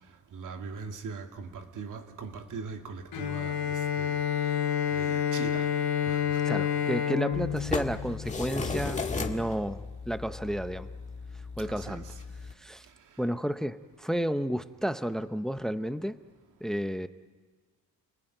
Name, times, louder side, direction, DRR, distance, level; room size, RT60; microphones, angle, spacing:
voice 1, 0.3-4.2 4.9-5.7 6.1-6.4 11.6-12.2 13.1-13.2, right 5 dB, 55° right, 2.5 m, -41 dB
Bowed string instrument, 3.1-8.8, left 9 dB, 75° left, 3.0 m, -29 dB
voice 2, 6.4-10.9 11.6-12.0 12.6-12.9 13.2-16.2 16.6-17.1, equal, ahead, 0.7 m, -32 dB
sound 1, 7.3-12.5, left 4 dB, 20° left, 1.9 m, -36 dB
30.0 x 20.0 x 9.1 m
cardioid pair, 130°, 36 cm